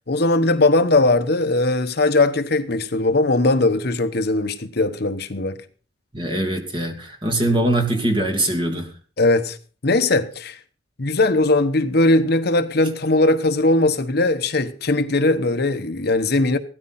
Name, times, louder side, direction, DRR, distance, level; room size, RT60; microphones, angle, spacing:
voice 1, 0.1-5.6 9.2-9.6 9.8-10.6 11.0-16.6, left 2 dB, 55° left, 1.0 m, -19 dB
voice 2, 6.1-8.9, right 1 dB, 25° right, 2.7 m, -22 dB
16.5 x 13.5 x 4.2 m
head